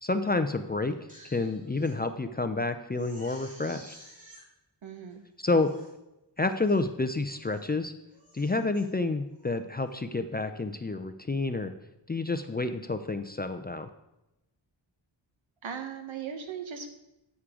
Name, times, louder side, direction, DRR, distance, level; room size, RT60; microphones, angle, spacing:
voice 1, 0.0-0.9 1.3-4.0 5.4-5.7 6.4-7.9 8.3-11.7 12.1-13.9, left 3 dB, 20° left, 8 dB, 0.4 m, -29 dB
Crying sobbing, 0.9-2.0 2.4-2.5 2.9-4.4 5.1-5.2 5.5-5.9 6.4-6.8 7.3-7.7 8.1-8.8 9.3-9.6, equal, 15° right, 3.0 m, -53 dB
voice 2, 4.8-5.2 15.6-16.9, right 7 dB, 80° right, 6 dB, 1.3 m, -38 dB
9.6 x 8.4 x 3.7 m, 0.92 s
wide cardioid pair, 135°, 47 cm